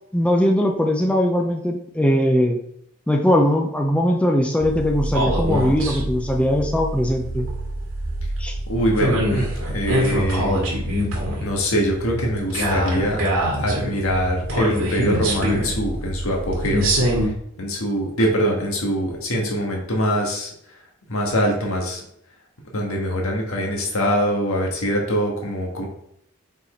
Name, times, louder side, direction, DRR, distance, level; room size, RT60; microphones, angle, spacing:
voice 1, 0.1-2.6 3.1-7.5 8.4-8.5, equal, 5° left, 2 dB, 0.5 m, -20 dB
sound 1, 4.6-17.3, equal, 85° right, 1.9 m, -24 dB
voice 2, 8.7-10.6 11.4-13.2 13.6-16.8 17.6-20.5 21.1-22.0 22.7-25.9, equal, 75° left, 0 dB, 1.6 m, -23 dB
5.8 x 4.1 x 4.3 m, 0.71 s
head